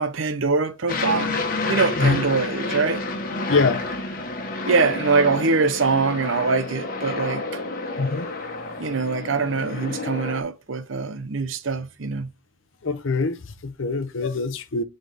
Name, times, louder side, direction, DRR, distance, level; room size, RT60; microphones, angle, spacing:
voice 1, 0.0-1.4 1.7-3.0 4.6-7.6 8.8-12.3, right 4 dB, 70° right, 0.7 m, -23 dB
Aircraft, 0.9-10.4, left 3 dB, 45° left, 1.2 m, -29 dB
voice 2, 3.5-3.8 8.0-8.3 12.8-14.8, left 4 dB, 70° left, 0.7 m, -24 dB
7.7 x 4.0 x 3.5 m
head